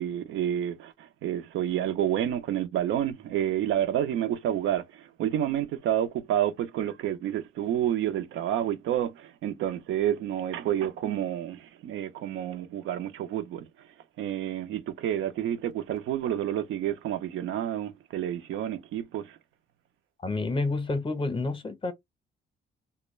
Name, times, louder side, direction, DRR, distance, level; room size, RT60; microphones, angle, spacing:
voice 1, 0.0-13.7 14.2-19.4, right 11 dB, 80° right, 0.5 m, -29 dB
voice 2, 20.2-21.9, left 3 dB, 25° left, 0.6 m, -29 dB
2.2 x 2.1 x 3.0 m
cardioid pair, 90°, 20 cm